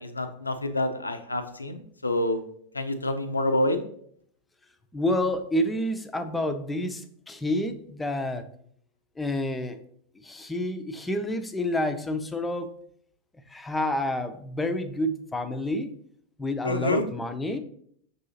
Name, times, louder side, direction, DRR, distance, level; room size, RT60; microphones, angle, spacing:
voice 1, 0.0-2.4 2.7-3.8 16.6-17.0, left 1 dB, 80° left, 9 dB, 0.4 m, -27 dB
voice 2, 4.9-8.5 9.2-9.8 10.2-12.7 13.5-15.9 16.4-17.6, left 1 dB, 10° left, 9 dB, 0.4 m, -29 dB
6.1 x 2.7 x 2.7 m, 0.65 s
figure-of-eight pair, 90°, 0 cm